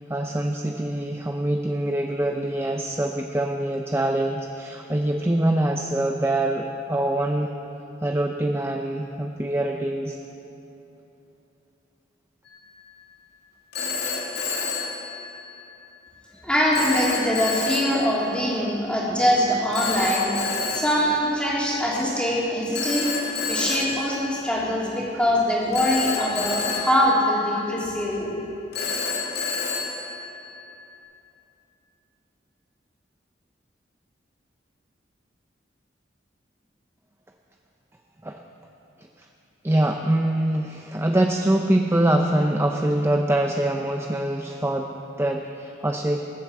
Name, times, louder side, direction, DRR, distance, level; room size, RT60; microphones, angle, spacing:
voice 1, 0.1-7.6 8.0-10.2 38.2-38.4 39.6-46.2, right 1 dB, 15° right, 3 dB, 0.6 m, -24 dB
Telephone, 12.5-12.8 13.7-15.7 16.7-18.5 19.7-21.9 22.7-25.1 25.7-28.0 28.7-30.9, left 5 dB, 60° left, 2.1 m, -30 dB
voice 2, 16.3-20.3 20.6-23.1 23.4-28.3, equal, 5° left, -5 dB, 3.2 m, -23 dB
20.0 x 8.4 x 7.7 m, 3.0 s
head